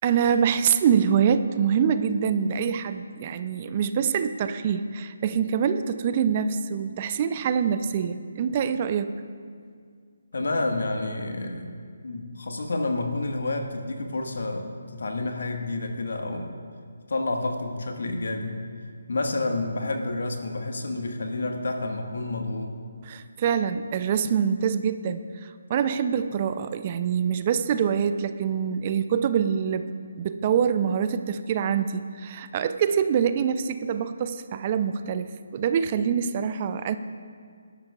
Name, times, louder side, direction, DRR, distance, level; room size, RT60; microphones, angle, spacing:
voice 1, 0.0-9.2 23.0-29.9 30.2-37.0, right 7 dB, 35° right, 11 dB, 0.5 m, -25 dB
voice 2, 10.3-11.7 12.0-16.5 17.1-18.6 19.1-22.7, left 2 dB, 70° left, 3 dB, 1.5 m, -29 dB
20.5 x 11.5 x 2.4 m, 2.1 s
figure-of-eight pair, 150°, 0 cm